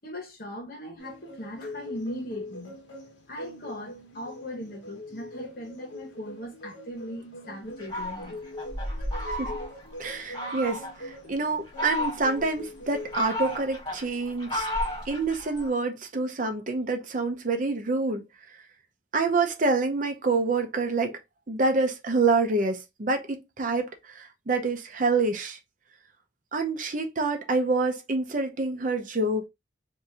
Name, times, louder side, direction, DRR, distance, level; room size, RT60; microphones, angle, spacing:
voice 1, 0.0-2.7 3.3-8.4, left 1 dB, 50° left, 1.3 m, -39 dB
sound 1, 1.0-13.6, left 1 dB, 70° left, 1.1 m, -42 dB
Fowl, 7.8-9.9 10.3-11.0 11.5-12.5 12.9-15.7, equal, 20° left, 1.7 m, -33 dB
voice 2, 10.0-14.7 15.1-18.2 19.1-21.2 21.5-25.6 26.5-29.5, right 3 dB, 45° right, 0.6 m, -27 dB
3.6 x 2.7 x 2.8 m
head